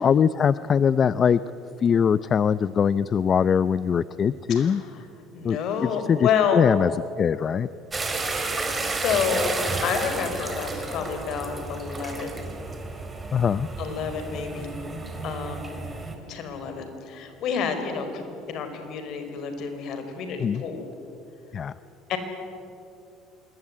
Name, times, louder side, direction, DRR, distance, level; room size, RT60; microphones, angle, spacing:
voice 1, 0.0-1.4 1.8-4.8 5.4-5.6 5.9-6.9 7.2-7.7 13.3-13.7 20.4-20.6 21.5-21.7, left 7 dB, 40° left, 16 dB, 0.6 m, -22 dB
voice 2, 5.3-6.6 8.8-12.4 13.8-14.7 15.2-15.8 16.3-20.9 22.1-22.2, left 7 dB, 60° left, 7 dB, 4.9 m, -29 dB
sound 1, 7.9-16.2, right 3 dB, 20° right, 4.4 m, -31 dB
26.5 x 21.5 x 9.8 m, 2.7 s
supercardioid pair, 95°, 0 cm